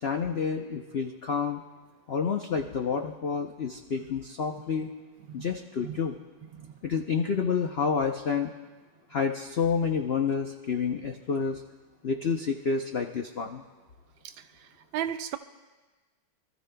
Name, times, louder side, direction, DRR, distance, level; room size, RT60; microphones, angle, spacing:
voice 1, 0.0-1.6 2.1-4.9 5.3-6.2 6.8-8.5 9.1-11.6 12.0-13.6, left 5 dB, 75° left, 3 dB, 0.5 m, -29 dB
voice 2, 14.9-15.4, right 10 dB, 85° right, 10 dB, 1.4 m, -33 dB
26.0 x 14.0 x 2.2 m, 1.3 s
omnidirectional pair, 2.1 m